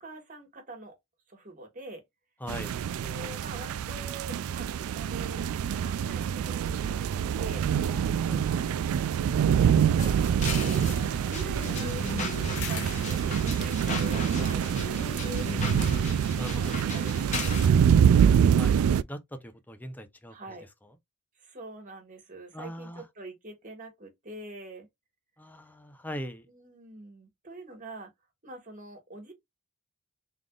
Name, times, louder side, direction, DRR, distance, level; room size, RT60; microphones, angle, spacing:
voice 1, 0.0-0.9 1.3-2.0 3.0-7.6 8.3-8.7 9.6-11.9 12.4-15.3 16.5-17.0 17.5-18.1 20.3-20.7 21.4-24.9 26.5-28.1 28.4-29.3, right 2 dB, 40° right, 1.5 m, -45 dB
voice 2, 2.4-2.8 7.9-8.5 16.4-16.8 18.5-18.8 19.0-20.4 22.5-23.0 25.4-26.5, equal, 10° left, 0.6 m, -40 dB
sound 1, 2.5-19.0, right 8 dB, 85° right, 0.3 m, -25 dB
sound 2, 10.0-17.7, left 4 dB, 35° left, 1.0 m, -37 dB
sound 3, 12.6-17.5, left 7 dB, 90° left, 0.6 m, -46 dB
3.9 x 3.4 x 2.3 m
head